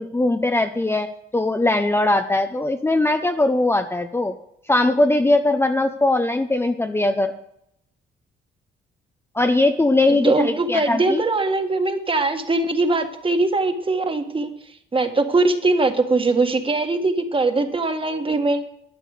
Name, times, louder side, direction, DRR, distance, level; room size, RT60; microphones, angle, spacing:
voice 1, 0.0-4.3 4.7-7.4 9.3-11.2, left 2 dB, 10° left, 7 dB, 0.7 m, -20 dB
voice 2, 10.1-14.5 14.9-18.6, right 3 dB, 25° right, 6 dB, 1.7 m, -21 dB
12.0 x 8.9 x 6.6 m, 0.75 s
cardioid pair, 90°, 20 cm